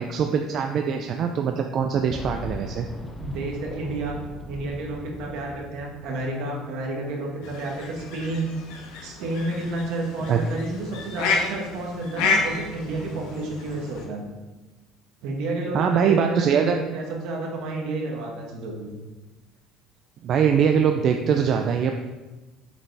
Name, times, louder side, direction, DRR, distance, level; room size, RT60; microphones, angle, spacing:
voice 1, 0.0-2.9 10.3-10.4 15.7-16.8 20.2-21.9, right 7 dB, 35° right, 4 dB, 0.4 m, -22 dB
Boom, 2.1-6.8 7.1-7.2 8.3-8.4, left 1 dB, 10° left, 0.6 m, -39 dB
voice 2, 3.2-4.2 4.5-8.5 9.0-14.3 15.2-18.9, right 2 dB, 60° right, 0 dB, 1.7 m, -30 dB
sound 1, 7.4-14.0, left 4 dB, 80° left, 1.3 m, -30 dB
7.1 x 6.8 x 3.4 m, 1.2 s
cardioid pair, 175°, 0 cm